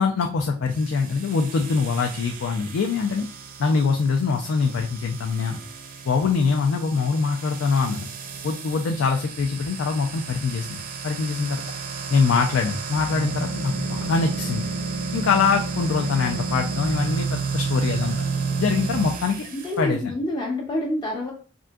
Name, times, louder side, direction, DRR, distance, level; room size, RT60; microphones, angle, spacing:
voice 1, 0.0-3.3 3.6-5.6 6.1-8.1 8.4-11.6 12.1-14.7 15.1-18.2 18.6-19.5 19.8-20.1, left 5 dB, 90° left, 3 dB, 0.4 m, -23 dB
sound 1, 0.7-19.8, right 4 dB, 45° right, 0.4 m, -31 dB
voice 2, 19.5-21.3, left 1 dB, 25° left, -2 dB, 0.5 m, -27 dB
3.6 x 2.5 x 2.3 m, 0.40 s
head